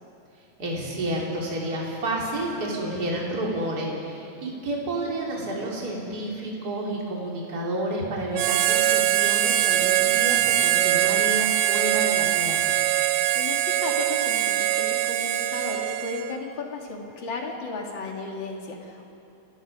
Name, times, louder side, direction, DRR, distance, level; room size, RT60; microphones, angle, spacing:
voice 1, 0.6-12.8, right 1 dB, 30° right, -3 dB, 3.5 m, -30 dB
Harmonica, 8.3-16.4, right 13 dB, 75° right, 2.0 m, -23 dB
voice 2, 13.3-19.1, left 3 dB, 40° left, 1 dB, 2.7 m, -34 dB
29.0 x 17.5 x 5.4 m, 2.7 s
omnidirectional pair, 3.3 m